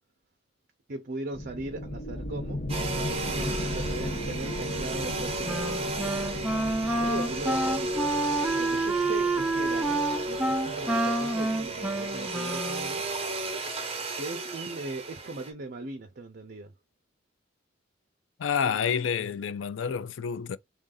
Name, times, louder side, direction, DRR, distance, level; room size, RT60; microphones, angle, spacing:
voice 1, 0.9-2.6 2.9-6.2 7.0-8.1 8.6-13.1 14.2-16.7, right 2 dB, 55° right, 0.6 m, -39 dB
sound 1, 1.3-12.8, left 1 dB, 40° left, 0.9 m, -37 dB
Domestic sounds home sounds, 2.7-15.5, right 2 dB, 30° right, 1.0 m, -34 dB
Wind instrument woodwind instrument, 5.4-12.9, right 2 dB, 5° right, 0.5 m, -28 dB
voice 2, 18.4-20.6, left 7 dB, 75° left, 0.4 m, -29 dB
3.6 x 2.7 x 3.7 m
head